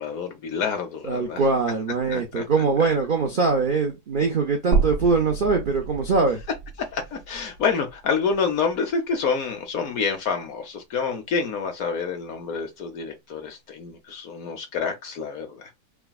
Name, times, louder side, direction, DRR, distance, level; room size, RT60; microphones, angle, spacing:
voice 1, 0.0-1.4 2.1-2.4 2.8-2.9 6.8-15.7, left 5 dB, 60° left, 1.3 m, -28 dB
voice 2, 1.0-6.4, right 4 dB, 55° right, 0.5 m, -22 dB
sound 1, 4.7-8.9 9.2-9.3 10.7-10.8, right 5 dB, 80° right, 1.3 m, -30 dB
5.8 x 2.3 x 2.3 m
omnidirectional pair, 1.8 m